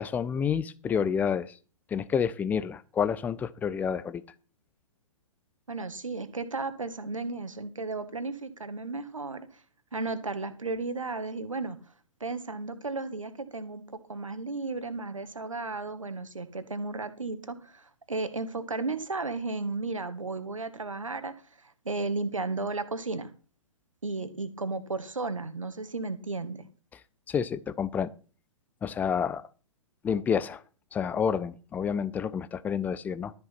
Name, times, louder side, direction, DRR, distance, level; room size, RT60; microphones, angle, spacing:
voice 1, 0.0-1.6 1.9-4.2 27.3-28.1 28.8-29.4 30.0-30.6 30.9-33.3, left 7 dB, 10° left, 16 dB, 0.6 m, -29 dB
voice 2, 5.7-9.5 9.9-11.8 12.2-21.4 21.6-23.3 24.0-26.6, right 3 dB, 75° right, 11 dB, 1.8 m, -34 dB
13.0 x 6.9 x 6.0 m, 0.37 s
figure-of-eight pair, 120°, 17 cm